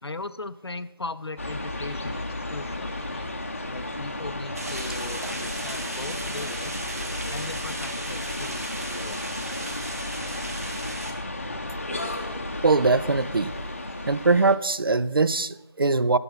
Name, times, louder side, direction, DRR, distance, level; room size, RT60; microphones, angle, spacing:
voice 1, 0.0-3.3 3.7-6.8 7.3-9.4, left 3 dB, 75° left, 12 dB, 0.6 m, -38 dB
sound 1, 1.4-14.6, left 2 dB, 30° left, 0.7 m, -33 dB
sound 2, 4.6-11.1, right 2 dB, 35° right, 1.2 m, -36 dB
voice 2, 12.6-13.5 14.1-16.2, right 3 dB, 60° right, 17 dB, 0.5 m, -22 dB
12.5 x 6.0 x 5.6 m, 0.98 s
figure-of-eight pair, 170°, 14 cm